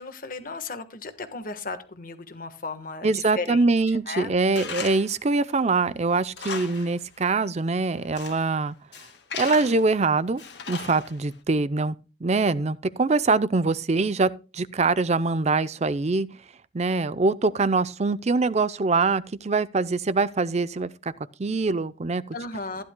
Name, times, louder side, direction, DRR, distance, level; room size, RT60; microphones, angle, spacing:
voice 1, 0.0-3.7 4.1-4.3 22.3-22.8, left 3 dB, 50° left, 1.3 m, -35 dB
voice 2, 3.0-8.8 9.4-10.4 10.7-12.0 12.2-16.3 16.7-21.1 21.4-22.4, right 3 dB, 35° right, 0.5 m, -23 dB
Tools, 4.6-5.2 5.6-5.7 6.1-7.0 7.2-7.3 7.9-8.5 8.9-9.9 10.4-11.3, left 6 dB, 65° left, 1.5 m, -36 dB
15.0 x 10.5 x 2.2 m
head